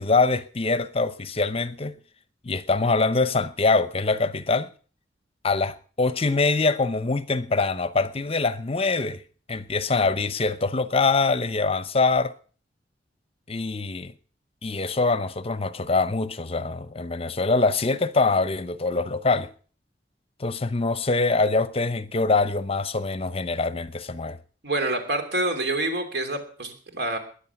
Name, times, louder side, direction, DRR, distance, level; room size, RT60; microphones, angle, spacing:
voice 1, 0.0-1.9 2.4-4.7 5.4-9.2 9.5-12.3 13.5-14.1 14.6-19.5 20.4-24.4, left 3 dB, 35° left, 0.8 m, -24 dB
voice 2, 24.6-27.2, right 2 dB, 65° right, 3.0 m, -27 dB
20.5 x 10.5 x 5.9 m
head